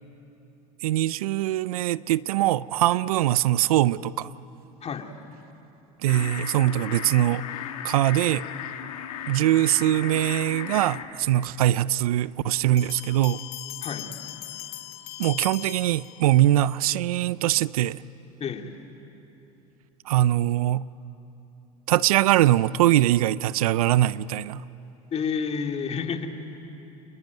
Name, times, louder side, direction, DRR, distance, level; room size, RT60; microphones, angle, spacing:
voice 1, 0.8-4.3 6.0-7.4 7.8-8.4 9.3-13.4 15.2-18.0 20.1-20.8 21.9-24.6, right 14 dB, 90° right, 0.5 m, -22 dB
voice 2, 4.8-5.1 13.8-14.1 18.4-18.8 25.1-26.3, left 6 dB, 35° left, 2.3 m, -30 dB
sound 1, 6.1-11.0, left 9 dB, 90° left, 1.7 m, -36 dB
sound 2, 12.8-16.5, left 15 dB, 65° left, 1.5 m, -39 dB
28.0 x 20.5 x 9.4 m
supercardioid pair, 95°, 18 cm